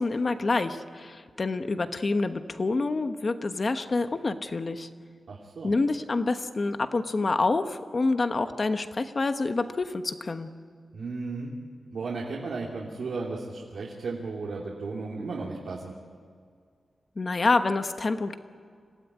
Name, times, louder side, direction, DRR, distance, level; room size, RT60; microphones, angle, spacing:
voice 1, 0.0-4.9 5.6-10.5 17.2-18.3, left 3 dB, 35° left, 9 dB, 1.1 m, -27 dB
voice 2, 5.3-5.7 10.9-11.5 11.9-15.9, right 3 dB, 75° right, -3 dB, 3.1 m, -34 dB
26.5 x 17.0 x 9.7 m, 2.1 s
wide cardioid pair, 160°, 0 cm